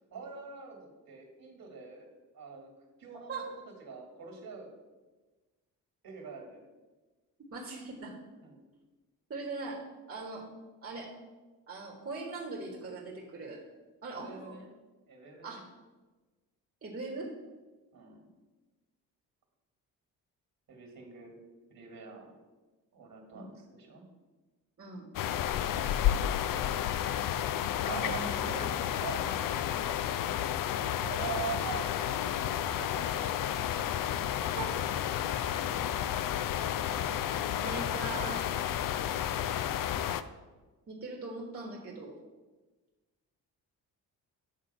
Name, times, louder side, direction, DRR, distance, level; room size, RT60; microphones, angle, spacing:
voice 1, 0.1-2.7 3.0-3.4 3.8-4.7 6.0-6.6 8.4-8.6 14.1-14.7 15.1-15.6 17.9-18.3 20.7-21.4 21.7-22.3 22.9-24.1 27.9-29.3 31.0-33.4, right 6 dB, 55° right, 3 dB, 2.2 m, -43 dB
voice 2, 7.5-8.1 9.3-9.8 10.1-10.5 10.8-11.1 11.7-13.6 14.0-14.6 15.4-15.6 16.8-17.3 23.3-23.4 24.8-25.1 27.8-28.4 34.5-34.8 37.6-38.5 40.9-42.2, right 3 dB, 35° right, -1 dB, 1.5 m, -40 dB
sound 1, 25.1-40.2, left 10 dB, 55° left, 0.5 m, -31 dB
7.8 x 3.7 x 5.5 m, 1.2 s
hypercardioid pair, 50°, 42 cm